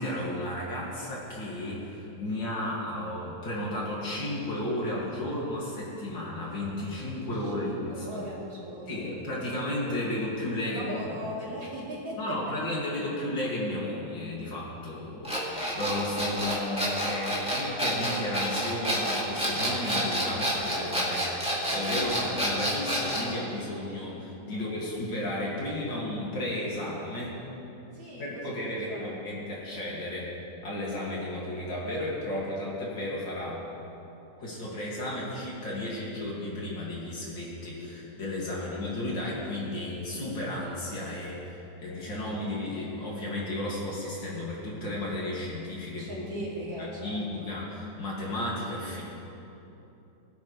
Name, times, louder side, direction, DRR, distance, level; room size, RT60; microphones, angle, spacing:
voice 1, 0.0-8.2 8.9-10.9 11.2-11.3 12.2-27.4 28.2-30.3 30.6-33.6 34.4-46.5 46.8-49.0, left 1 dB, 70° left, -5 dB, 3.3 m, -33 dB
voice 2, 7.4-9.2 10.6-12.5 24.5-25.1 27.9-29.1 38.5-38.7 46.0-47.5, right 1 dB, 75° right, -5 dB, 3.3 m, -40 dB
sound 1, 15.2-23.3, equal, 5° right, 2.1 m, -29 dB
21.0 x 9.4 x 3.4 m, 3.0 s
omnidirectional pair, 2.1 m